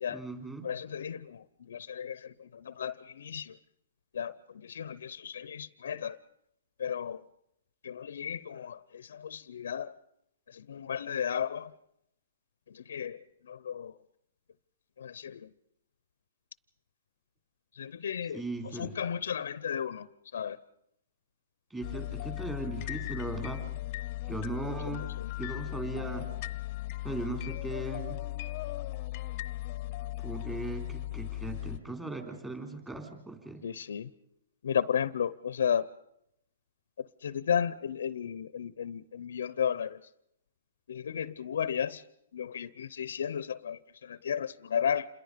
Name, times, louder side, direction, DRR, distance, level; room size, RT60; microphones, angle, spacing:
voice 1, 0.1-0.7 18.3-18.9 21.7-23.6 24.3-25.1 25.4-26.3 27.0-28.2 30.2-33.6, right 2 dB, 10° right, 4 dB, 3.8 m, -38 dB
voice 2, 0.6-3.5 4.1-4.3 4.6-6.2 6.8-7.2 7.8-9.9 10.5-11.7 12.7-13.2 13.5-13.9 15.0-15.5 17.8-18.4 18.7-20.1 20.3-20.6 24.9-25.3 33.6-34.1 34.6-35.8 37.0-40.0 40.9-42.0 42.3-45.1, left 8 dB, 75° left, 18 dB, 0.7 m, -34 dB
sound 1, 21.8-31.8, left 16 dB, 40° left, 0.9 m, -37 dB
28.0 x 21.5 x 5.2 m, 0.80 s
hypercardioid pair, 145°, 0 cm